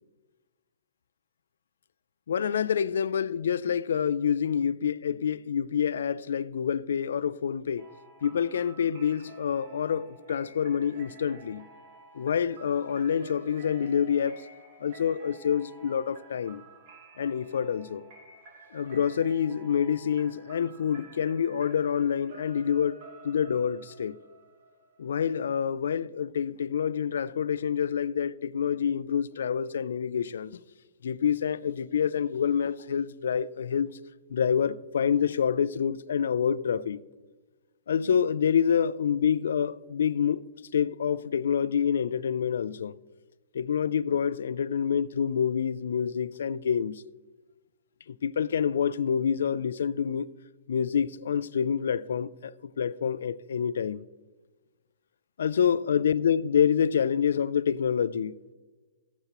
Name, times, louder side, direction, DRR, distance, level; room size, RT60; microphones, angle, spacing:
voice 1, 2.3-7.9 8.2-11.7 12.1-14.4 14.8-16.6 17.2-18.1 18.7-23.0 23.2-24.2 25.0-30.6 31.0-33.9 34.3-37.0 37.9-40.4 40.7-42.9 43.5-47.0 48.1-50.3 50.7-54.1 55.4-58.4, left 8 dB, 85° left, 0.3 m, -27 dB
sound 1, 7.8-25.4, right 3 dB, 50° right, 2.7 m, -52 dB
14.5 x 6.9 x 3.0 m
hypercardioid pair, 150°, 0 cm